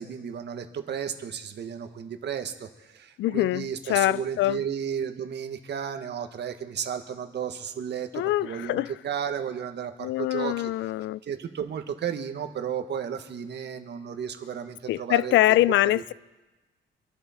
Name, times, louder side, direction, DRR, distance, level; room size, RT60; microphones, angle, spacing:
voice 1, 0.0-10.7 11.2-15.6 15.9-16.1, right 8 dB, 60° right, 1.5 m, -33 dB
voice 2, 3.2-4.6 8.1-8.9 10.0-11.2 14.9-16.1, left 15 dB, 70° left, 0.4 m, -24 dB
25.5 x 11.5 x 4.3 m
cardioid pair, 90°, 20 cm